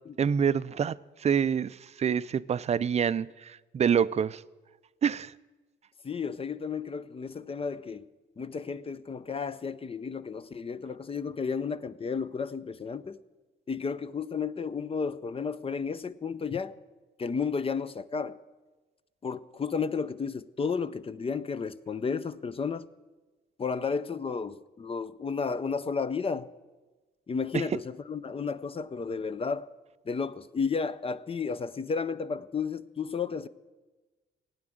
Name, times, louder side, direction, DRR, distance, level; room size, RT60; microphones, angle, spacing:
voice 1, 0.2-4.4 5.0-5.3 27.5-27.6, right 7 dB, 35° right, 0.4 m, -27 dB
voice 2, 6.0-8.1 8.4-13.2 13.7-16.7 17.2-18.4 19.2-22.9 23.6-26.5 27.3-29.7 30.1-33.5, left 5 dB, 30° left, 0.6 m, -32 dB
16.0 x 9.7 x 7.7 m
cardioid pair, 90°, 20 cm